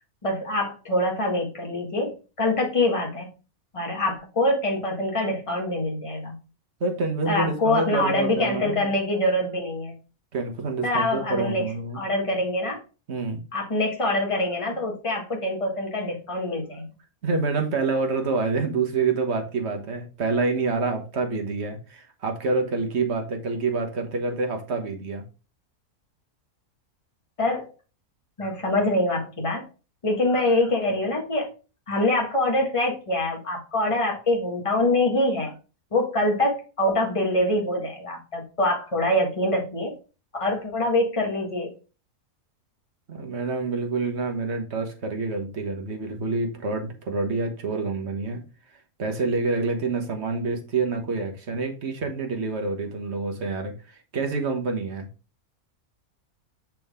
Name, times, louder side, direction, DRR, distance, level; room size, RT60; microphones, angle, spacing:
voice 1, 0.2-3.3 3.7-6.4 7.3-9.9 10.8-12.8 13.5-16.9 27.4-27.7 28.4-29.7 30.0-31.5 31.9-35.5 35.9-39.9 40.4-41.7, left 1 dB, 20° left, 1.7 m, -25 dB
voice 2, 6.8-8.9 10.3-12.0 13.1-13.4 17.2-25.2 43.1-48.4 49.0-55.1, right 3 dB, 50° right, 1.4 m, -27 dB
6.2 x 4.6 x 3.6 m
omnidirectional pair, 1.5 m